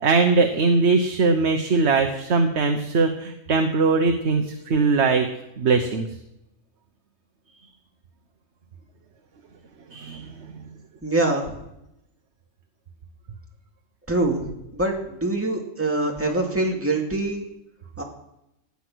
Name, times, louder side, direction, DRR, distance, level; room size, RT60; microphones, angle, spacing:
voice 1, 0.0-5.3 5.6-6.1 9.9-10.6, right 4 dB, 60° right, 5 dB, 1.3 m, -21 dB
voice 2, 11.0-11.6 14.1-17.5 18.0-18.1, right 2 dB, 10° right, 0 dB, 2.4 m, -24 dB
18.0 x 9.6 x 6.2 m, 0.86 s
omnidirectional pair, 1.3 m